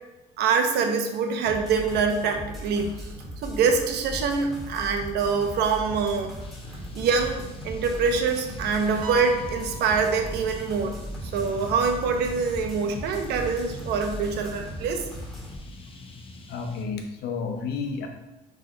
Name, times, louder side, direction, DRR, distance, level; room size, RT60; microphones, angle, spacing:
voice 1, 0.4-3.1 3.4-6.3 6.9-11.0 11.3-15.1, right 5 dB, 75° right, 5 dB, 0.9 m, -25 dB
sound 1, 1.4-15.6, equal, ahead, 2.0 m, -38 dB
sound 2, 6.4-16.8, left 3 dB, 35° left, 0.8 m, -43 dB
sound 3, 9.0-10.9, equal, 55° right, 1.3 m, -38 dB
voice 2, 16.5-18.1, left 5 dB, 70° left, 4 dB, 1.1 m, -31 dB
6.2 x 3.4 x 4.6 m, 1.0 s
cardioid pair, 110°, 17 cm